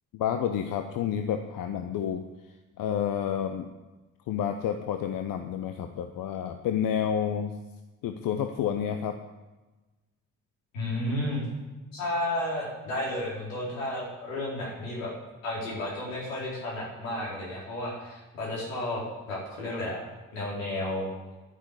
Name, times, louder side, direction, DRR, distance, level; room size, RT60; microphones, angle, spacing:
voice 1, 0.1-2.2 2.8-3.7 4.3-7.5 8.0-9.2, left 9 dB, 55° left, 7 dB, 1.0 m, -29 dB
voice 2, 10.7-11.4 11.9-15.1 15.4-20.0 20.3-21.1, left 1 dB, 75° left, -5 dB, 4.5 m, -32 dB
11.0 x 9.8 x 8.3 m, 1.2 s
figure-of-eight pair, 40°, 40 cm